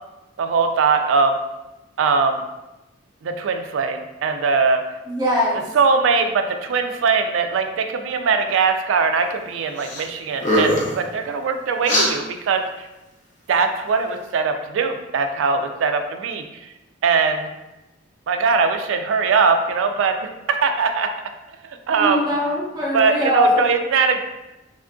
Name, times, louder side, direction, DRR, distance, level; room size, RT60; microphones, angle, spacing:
voice 1, 0.4-1.3 2.0-2.4 3.2-4.8 5.7-12.6 13.5-16.4 17.0-17.5 18.3-20.1 20.5-21.1 21.9-22.3 22.9-24.2, right 5 dB, 75° right, 6 dB, 0.3 m, -20 dB
voice 2, 5.1-5.6 22.0-23.6, left 1 dB, 20° right, -6 dB, 0.6 m, -21 dB
sound 1, 9.8-10.1 10.4-11.0 11.8-12.1, equal, 40° left, 0.5 m, -20 dB
3.4 x 2.5 x 2.2 m, 0.99 s
head